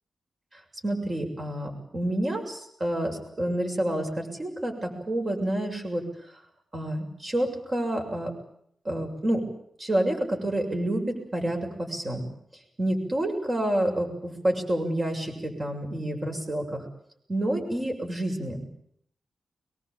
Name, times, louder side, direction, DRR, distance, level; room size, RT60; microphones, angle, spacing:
voice 1, 0.8-6.0 6.7-8.3 8.9-9.4 9.8-12.3 12.8-16.8 17.3-18.6, right 1 dB, 30° right, 3 dB, 7.2 m, -28 dB
23.5 x 22.0 x 8.7 m, 0.69 s
wide cardioid pair, 140°, 0 cm